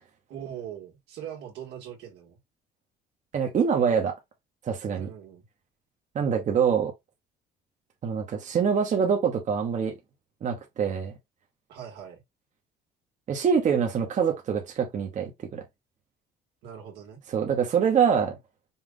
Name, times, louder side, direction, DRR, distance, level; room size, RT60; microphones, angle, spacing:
voice 1, 0.3-2.4 4.9-5.5 11.7-12.2 16.6-17.2, right 9 dB, 85° right, 1.8 m, -41 dB
voice 2, 3.3-4.1 4.6-5.1 6.1-6.9 8.0-9.9 10.4-11.1 13.3-15.6 17.3-18.4, right 7 dB, 45° right, 1.1 m, -25 dB
5.6 x 2.5 x 3.8 m
cardioid pair, 110°, 17 cm